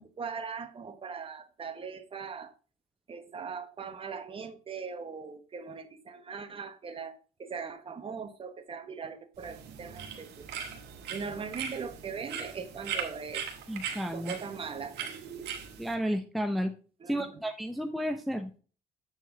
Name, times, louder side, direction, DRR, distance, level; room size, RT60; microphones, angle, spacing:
voice 1, 0.0-2.5 3.1-10.5 11.1-13.4 14.1-15.1 17.0-17.4, right 5 dB, 35° right, 1.1 m, -40 dB
sound 1, 9.4-15.9, right 7 dB, 80° right, 1.5 m, -40 dB
voice 2, 13.7-14.4 15.8-16.7 17.1-18.6, equal, ahead, 0.6 m, -32 dB
7.8 x 4.7 x 3.9 m
cardioid pair, 110°, 17 cm